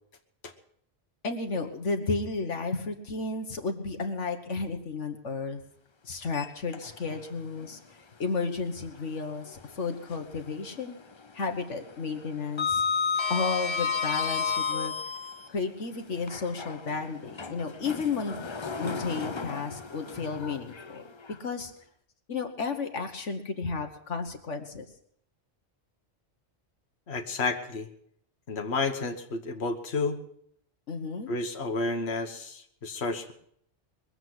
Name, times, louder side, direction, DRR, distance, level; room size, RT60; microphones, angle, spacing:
voice 1, 1.2-5.6 6.0-7.8 8.2-11.0 11.3-12.8 13.3-14.9 15.5-18.4 18.8-21.1 21.4-21.7 22.3-24.8 30.9-31.3, left 4 dB, 80° left, 5 dB, 1.7 m, -32 dB
Sliding door, 6.2-7.2 7.6-7.7 9.4-10.5 10.8-11.1 11.4-15.5 16.2-21.4, left 5 dB, 30° left, 0.6 m, -32 dB
voice 2, 27.1-27.9 28.5-30.2 31.3-33.3, left 3 dB, 60° left, 4 dB, 1.6 m, -31 dB
22.0 x 8.0 x 7.8 m, 0.67 s
omnidirectional pair, 1.2 m